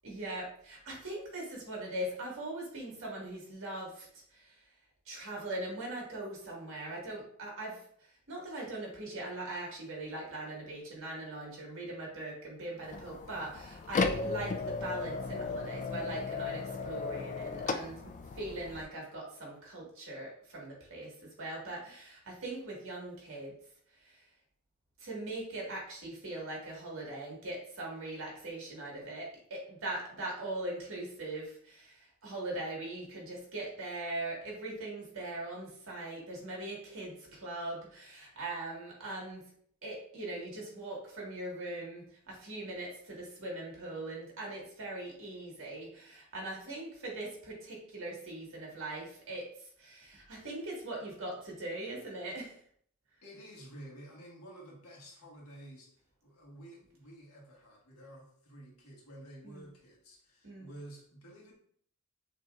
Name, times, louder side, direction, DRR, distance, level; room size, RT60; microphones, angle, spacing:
voice 1, 0.0-4.1 4.3-4.6 5.1-7.8 8.3-23.5 24.0-24.2 25.0-39.4 39.8-49.5 49.8-52.6 59.4-59.6 60.4-60.7, right 2 dB, 60° right, -2 dB, 1.7 m, -41 dB
sound 1, 12.8-18.8, left 4 dB, 35° left, 0.3 m, -36 dB
voice 2, 53.2-55.9 56.2-61.5, right 1 dB, 80° left, -3 dB, 1.6 m, -51 dB
6.6 x 2.9 x 2.4 m, 0.63 s
head